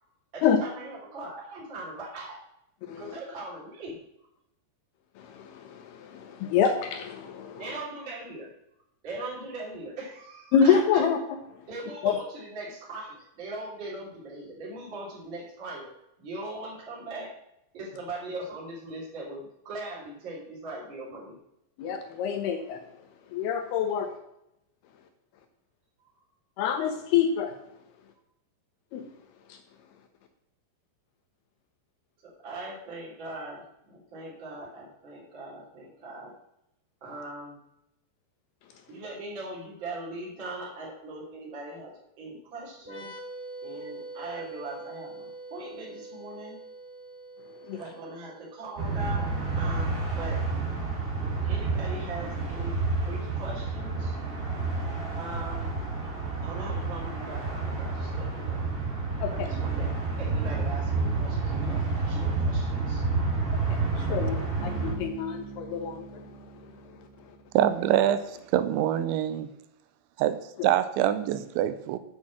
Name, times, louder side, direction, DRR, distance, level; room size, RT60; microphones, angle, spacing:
voice 1, 0.0-2.4 3.0-4.3 7.6-8.5 9.0-11.0 11.7-15.9 16.2-17.3 17.7-21.4 32.2-36.3 37.0-37.5 38.9-43.2 43.6-46.6 47.7-49.3 49.6-50.4 51.2-54.2 55.2-55.7 56.4-58.6 59.2-63.0, right 2 dB, 30° right, -6 dB, 3.2 m, -40 dB
voice 2, 2.8-3.2 5.2-7.6 10.5-11.2 12.0-12.2 21.8-22.8 23.3-24.2 26.6-27.6 28.9-29.1 29.5-29.6 47.6-47.8 59.2-59.5 63.7-66.3 70.6-70.7, left 7 dB, 80° left, 6 dB, 2.4 m, -27 dB
sound 1, 42.8-50.3, right 2 dB, 10° left, 1.8 m, -44 dB
sound 2, 48.8-64.9, right 3 dB, 55° right, 0.6 m, -29 dB
Bass guitar, 64.6-68.1, right 6 dB, 70° right, 3.7 m, -44 dB
voice 3, 67.5-68.2 68.5-69.5 70.2-70.4 70.6-72.0, right 11 dB, 90° right, 12 dB, 3.0 m, -24 dB
8.5 x 6.2 x 7.4 m, 0.82 s
omnidirectional pair, 5.3 m